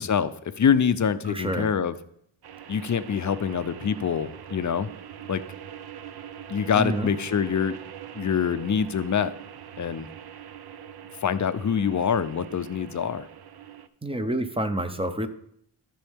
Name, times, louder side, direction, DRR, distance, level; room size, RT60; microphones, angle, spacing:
voice 1, 0.0-1.9 2.7-4.9 5.3-5.4 6.5-7.8 8.1-9.3 9.8-10.1 11.2-13.3, left 7 dB, 40° left, 13 dB, 0.5 m, -25 dB
voice 2, 1.2-1.7 6.7-7.1 14.0-15.3, right 1 dB, 10° right, 9 dB, 0.7 m, -28 dB
sound 1, 2.4-13.9, right 9 dB, 55° right, 0.6 m, -43 dB
13.0 x 5.5 x 3.5 m, 0.70 s
wide cardioid pair, 80°, 46 cm